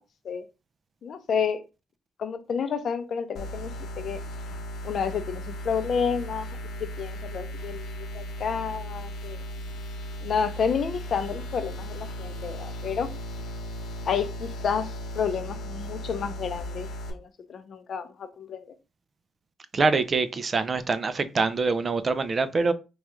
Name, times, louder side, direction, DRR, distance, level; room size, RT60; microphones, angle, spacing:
voice 1, 1.0-1.6 2.2-4.2 4.8-9.4 10.2-13.1 14.0-18.7, left 6 dB, 55° left, 0.5 m, -30 dB
sound 1, 3.4-17.1, equal, 80° left, 0.9 m, -36 dB
voice 2, 19.7-22.7, right 4 dB, 35° right, 0.4 m, -24 dB
4.6 x 2.3 x 3.0 m
cardioid pair, 90°, 0 cm